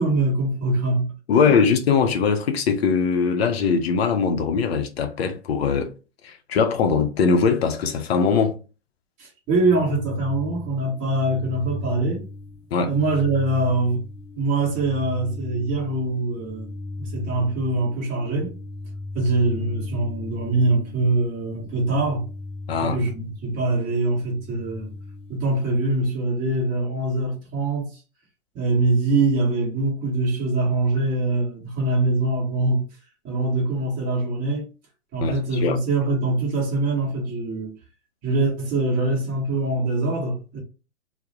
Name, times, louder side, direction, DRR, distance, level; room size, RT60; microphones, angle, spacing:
voice 1, 0.0-1.4 9.2-12.3 12.8-14.0 14.3-16.7 17.0-18.5 19.1-22.3 22.8-24.9 25.3-28.0 28.5-32.8 33.2-34.7 35.1-37.7 38.2-40.6, right 2 dB, 20° right, 0.9 m, -23 dB
voice 2, 1.3-5.9 6.2-8.6 12.7-12.9 22.7-23.0 35.2-35.8, left 5 dB, 55° left, 0.5 m, -21 dB
sound 1, 9.5-25.8, left 2 dB, 5° left, 0.6 m, -37 dB
2.3 x 2.0 x 2.8 m
hypercardioid pair, 130°, 38 cm